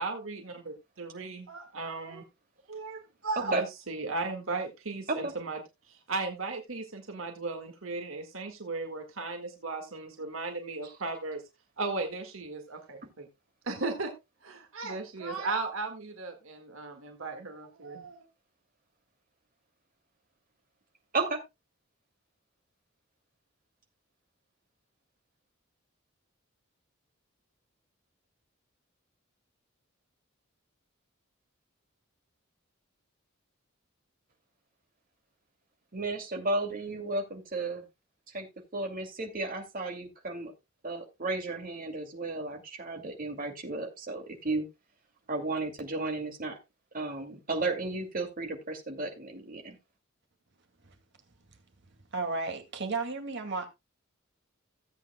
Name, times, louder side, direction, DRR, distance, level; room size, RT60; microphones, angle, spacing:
voice 1, 0.0-2.2 2.7-5.6 5.9-11.4 11.8-13.3 13.7-14.1 14.4-18.3, right 3 dB, 75° right, 1.8 m, -36 dB
voice 2, 35.9-37.8 38.3-38.5 38.7-40.5 40.8-44.7 45.3-46.6 46.9-49.8, right 2 dB, 45° right, 2.4 m, -33 dB
voice 3, 52.1-53.7, right 3 dB, 60° right, 2.2 m, -33 dB
16.5 x 8.4 x 2.2 m
head